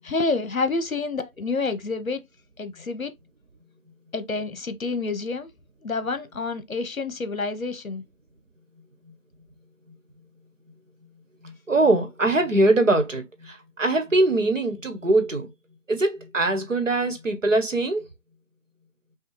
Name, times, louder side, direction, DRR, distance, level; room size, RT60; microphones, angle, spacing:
voice 1, 0.0-2.2 2.6-3.1 4.1-5.5 5.8-8.0, left 3 dB, 70° left, 0.9 m, -28 dB
voice 2, 11.4-15.5 15.9-18.1, right 2 dB, 60° right, 1.2 m, -22 dB
5.7 x 2.3 x 3.1 m
figure-of-eight pair, 170°, 43 cm